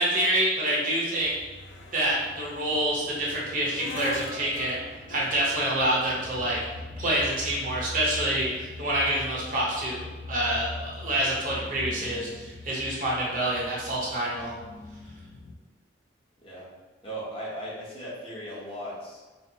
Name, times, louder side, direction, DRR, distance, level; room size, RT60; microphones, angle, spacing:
voice 1, 0.0-1.3 1.9-4.8 5.1-6.6 7.0-14.5, right 1 dB, 45° right, -5 dB, 0.8 m, -27 dB
sound 1, 1.2-15.6, left 2 dB, 80° left, 0.4 m, -41 dB
voice 2, 17.0-19.2, equal, 30° left, -7 dB, 0.8 m, -37 dB
4.1 x 2.0 x 2.8 m, 1.3 s
head